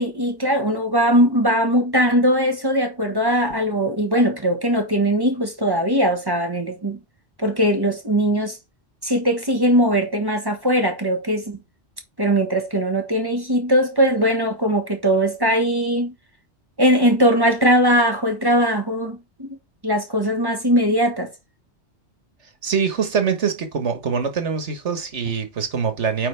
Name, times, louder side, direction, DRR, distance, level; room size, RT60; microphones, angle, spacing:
voice 1, 0.0-7.0 7.4-8.6 9.0-11.6 12.2-16.1 16.8-19.6 19.8-21.3, equal, 20° right, 1.3 m, -20 dB
voice 2, 22.6-26.3, right 6 dB, 85° right, 1.7 m, -24 dB
8.6 x 4.8 x 3.3 m
omnidirectional pair, 1.2 m